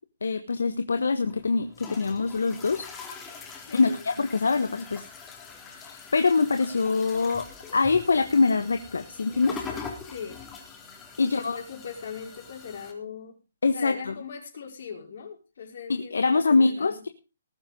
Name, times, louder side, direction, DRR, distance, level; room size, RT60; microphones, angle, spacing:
voice 1, 0.2-2.9 3.7-5.0 5.7-7.5 7.7-9.6 11.2-11.6 13.6-14.1 15.9-17.1, left 4 dB, 75° left, 9 dB, 1.4 m, -24 dB
sound 1, 1.2-12.9, left 5 dB, 15° left, 3.7 m, -43 dB
voice 2, 3.7-4.1 10.0-10.4 11.2-13.4 13.7-17.0, left 6 dB, 55° left, 3 dB, 5.2 m, -40 dB
19.5 x 7.4 x 5.2 m, 0.32 s
figure-of-eight pair, 140°, 0 cm